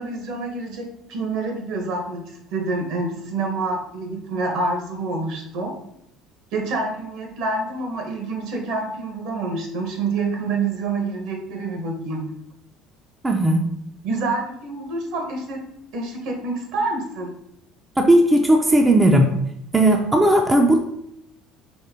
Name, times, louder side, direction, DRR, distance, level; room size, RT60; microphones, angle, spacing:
voice 1, 0.0-2.2 2.5-5.7 6.5-12.3 14.0-15.6 15.9-17.3, right 3 dB, 70° right, 2 dB, 1.2 m, -27 dB
voice 2, 13.2-13.6 18.0-19.3 19.7-20.8, right 1 dB, 15° right, 2 dB, 0.4 m, -16 dB
4.3 x 3.2 x 3.6 m, 0.78 s
cardioid pair, 125°, 0 cm